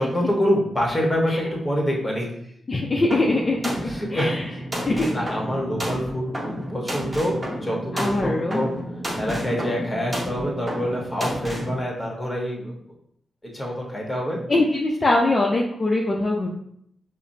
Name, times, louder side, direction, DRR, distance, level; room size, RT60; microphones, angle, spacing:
voice 1, 0.0-2.3 3.8-4.6 5.1-8.7 9.1-12.8 13.5-14.4, equal, 15° left, -2 dB, 1.2 m, -26 dB
voice 2, 2.7-3.7 4.1-4.4 4.9-5.1 7.9-8.6 14.5-16.5, left 2 dB, 40° left, -2 dB, 0.5 m, -22 dB
sound 1, 3.1-11.7, equal, 20° right, 1.1 m, -31 dB
4.8 x 2.0 x 2.7 m, 0.70 s
cardioid pair, 60°, 0 cm